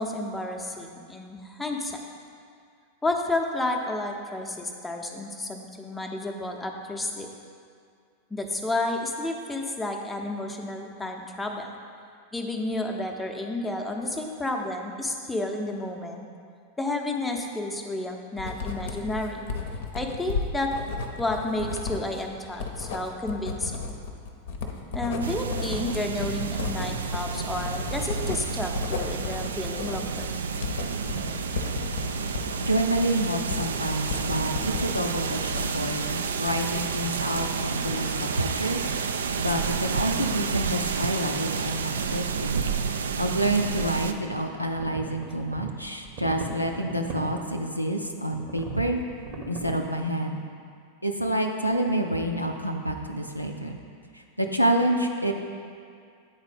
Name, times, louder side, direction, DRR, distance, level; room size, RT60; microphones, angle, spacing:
voice 1, 0.0-2.0 3.0-7.3 8.3-11.8 12.3-16.3 16.8-19.5 19.9-20.7 21.2-23.8 24.9-30.3, left 2 dB, 10° left, 2 dB, 0.7 m, -31 dB
Writing, 18.4-34.9 35.2-35.9, left 4 dB, 55° left, 0.7 m, -34 dB
sound 1, 25.2-44.1, right 5 dB, 65° right, 0.3 m, -30 dB
voice 2, 32.6-42.6 43.2-49.0 49.5-50.4 51.0-53.8 54.1-55.3, right 1 dB, 90° left, 2 dB, 0.5 m, -28 dB
sound 2, 44.7-47.4 48.3-49.8, right 3 dB, 35° right, 0.8 m, -38 dB
8.8 x 4.0 x 5.2 m, 2.2 s
figure-of-eight pair, 90°, 0 cm